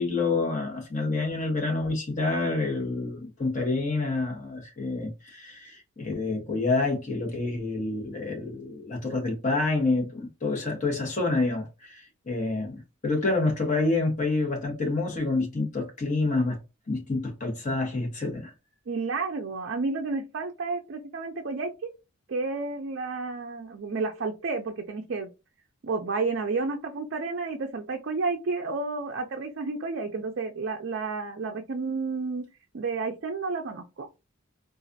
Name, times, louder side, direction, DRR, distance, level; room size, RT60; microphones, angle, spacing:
voice 1, 0.0-16.6 16.9-18.5, left 3 dB, 35° left, 1.2 m, -28 dB
voice 2, 18.9-21.9 22.3-25.3 25.8-32.4 32.7-34.1, right 4 dB, 55° right, 0.4 m, -31 dB
4.0 x 2.4 x 2.6 m
head